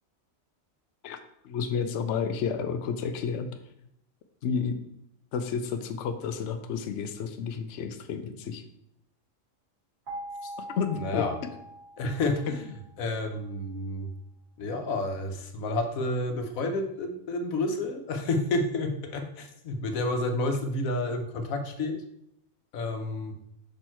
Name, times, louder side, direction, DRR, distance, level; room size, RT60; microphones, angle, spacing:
voice 1, 1.0-3.6 4.4-4.7 5.3-8.6 10.6-11.2 12.5-12.6, left 6 dB, 65° left, 7 dB, 0.8 m, -31 dB
sound 1, 10.1-13.0, right 1 dB, 85° right, 3.2 m, -42 dB
voice 2, 11.0-11.4 12.0-12.5 13.0-14.1 14.6-22.0 22.7-23.4, left 2 dB, 85° left, 5 dB, 1.2 m, -30 dB
5.4 x 4.4 x 4.4 m, 0.77 s
omnidirectional pair, 1.4 m